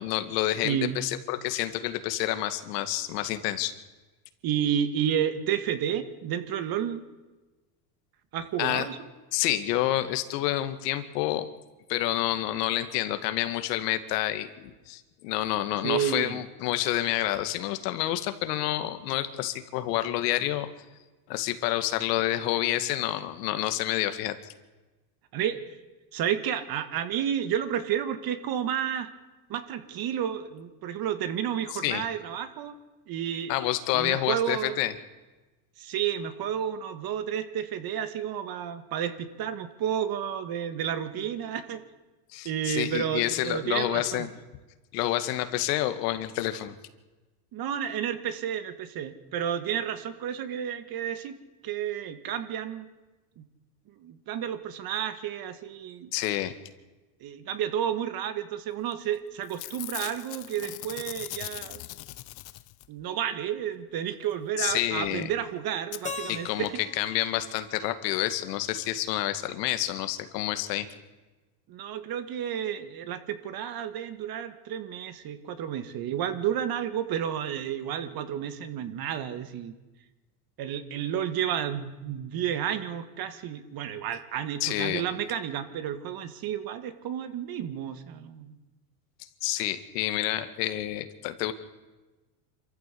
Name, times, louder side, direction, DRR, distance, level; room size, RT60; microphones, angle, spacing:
voice 1, 0.0-3.7 8.6-8.9 9.3-11.5 11.9-20.7 21.3-24.4 31.8-32.1 33.5-35.0 42.3-44.3 44.9-46.8 56.1-56.5 64.6-65.3 66.3-66.7 67.0-70.9 84.6-85.0 89.4-91.5, left 14 dB, 75° left, 10 dB, 2.1 m, -28 dB
voice 2, 0.6-1.0 4.4-7.0 8.3-9.1 15.8-16.4 25.3-25.6 26.1-29.1 29.5-32.7 33.1-33.5 33.9-34.8 35.8-41.8 42.4-44.3 47.5-51.3 51.6-52.9 53.4-53.5 54.0-56.1 57.2-61.8 62.9-66.7 71.7-79.8 80.6-88.6, right 9 dB, 45° right, 10 dB, 2.2 m, -31 dB
Packing tape duct tape / Tearing, 58.9-59.2 59.4-63.0 65.0-65.1 65.2-65.3 65.9-66.0 66.7-66.8 67.0-67.1, left 18 dB, 50° left, 1.1 m, -40 dB
Keyboard (musical), 66.0-69.0, left 4 dB, 15° left, 1.5 m, -42 dB
26.5 x 14.0 x 8.5 m, 1.2 s
supercardioid pair, 115°, 48 cm